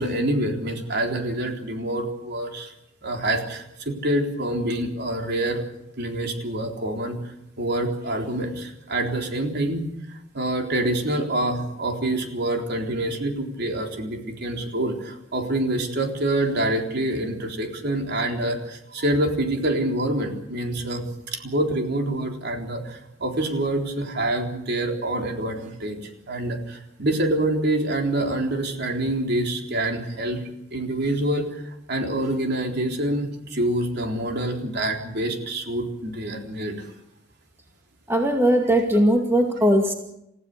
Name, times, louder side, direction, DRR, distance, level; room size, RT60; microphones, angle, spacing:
voice 1, 0.0-2.7 3.0-5.6 6.0-7.2 7.6-30.4 30.7-36.9, right 1 dB, 60° right, 2 dB, 3.8 m, -26 dB
voice 2, 38.1-39.9, equal, 15° right, 3 dB, 2.2 m, -19 dB
29.5 x 15.5 x 6.8 m, 0.83 s
head